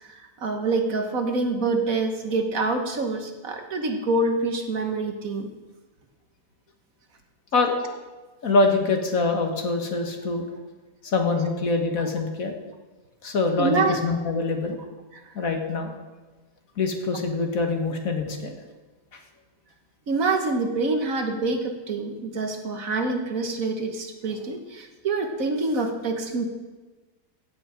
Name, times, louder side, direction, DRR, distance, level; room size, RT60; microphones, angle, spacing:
voice 1, 0.0-5.5 12.0-12.1 13.6-14.0 20.1-26.5, right 3 dB, 60° right, 5 dB, 1.7 m, -26 dB
voice 2, 8.4-10.5 11.0-12.5 13.2-14.8 15.4-15.9 16.8-18.5, left 3 dB, 60° left, 4 dB, 1.8 m, -24 dB
15.5 x 9.0 x 5.0 m, 1.2 s
omnidirectional pair, 1.7 m